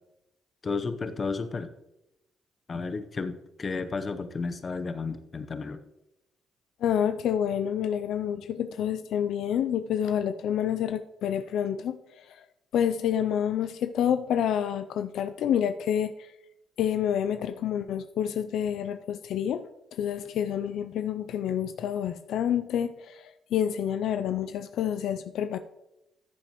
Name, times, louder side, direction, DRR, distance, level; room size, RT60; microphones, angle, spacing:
voice 1, 0.6-1.7 2.7-5.8, left 4 dB, 40° left, 10 dB, 0.8 m, -32 dB
voice 2, 6.8-12.4 12.7-16.3 16.8-19.7 20.0-25.6, left 9 dB, 75° left, 10 dB, 0.4 m, -28 dB
14.0 x 7.7 x 3.0 m, 0.90 s
cardioid pair, 90°, 0 cm